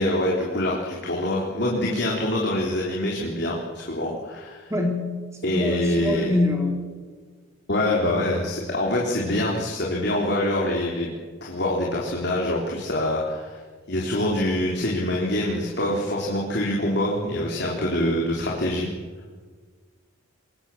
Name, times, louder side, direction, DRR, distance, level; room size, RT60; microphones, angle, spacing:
voice 1, 0.0-4.7 5.4-6.3 7.7-11.1 11.4-13.6 13.9-18.9, left 1 dB, 50° left, -3 dB, 3.6 m, -25 dB
voice 2, 4.7-5.1 5.4-6.8, left 2 dB, 15° right, 2 dB, 4.0 m, -25 dB
25.5 x 22.0 x 7.2 m, 1.5 s
head